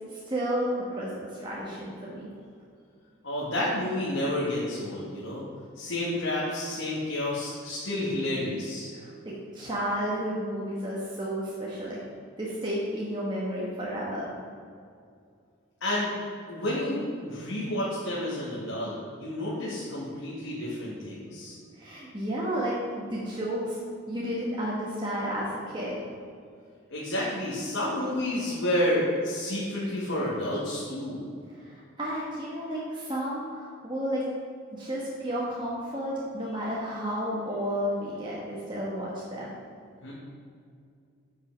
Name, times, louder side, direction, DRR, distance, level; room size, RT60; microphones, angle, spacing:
voice 1, 0.1-2.2 8.9-12.0 12.4-14.3 21.7-23.8 24.1-26.0 31.5-34.2 34.7-39.5, equal, 20° right, -6 dB, 1.2 m, -32 dB
voice 2, 3.2-5.4 5.8-8.9 15.8-16.1 16.5-21.6 26.9-31.3 40.0-40.1, left 1 dB, 70° left, -7 dB, 1.8 m, -30 dB
8.2 x 5.6 x 6.0 m, 2.3 s
head